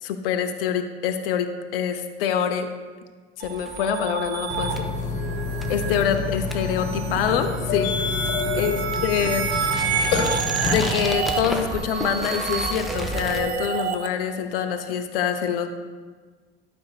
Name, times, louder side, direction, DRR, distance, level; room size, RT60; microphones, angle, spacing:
voice 1, 0.0-2.7 3.4-4.9 5.7-7.9 8.5-9.5 10.7-15.7, left 8 dB, 60° left, 7 dB, 0.7 m, -25 dB
sound 1, 3.4-13.4, equal, ahead, 0.7 m, -34 dB
sound 2, 3.4-14.1, right 7 dB, 70° right, 0.6 m, -30 dB
Burping eructation, 4.5-10.9, left 5 dB, 40° left, 1.5 m, -28 dB
12.0 x 6.2 x 2.3 m, 1.5 s
figure-of-eight pair, 75°, 33 cm